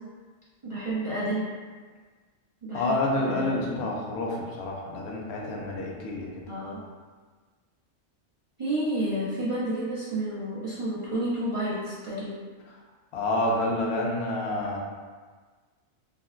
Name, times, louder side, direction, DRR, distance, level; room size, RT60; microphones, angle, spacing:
voice 1, 0.6-1.5 2.6-3.8 6.5-6.8 8.6-12.3, right 1 dB, 60° right, -10 dB, 0.3 m, -30 dB
voice 2, 2.7-6.3 13.1-14.8, left 1 dB, 65° left, -2 dB, 0.8 m, -28 dB
3.6 x 2.1 x 2.4 m, 1.5 s
omnidirectional pair, 1.3 m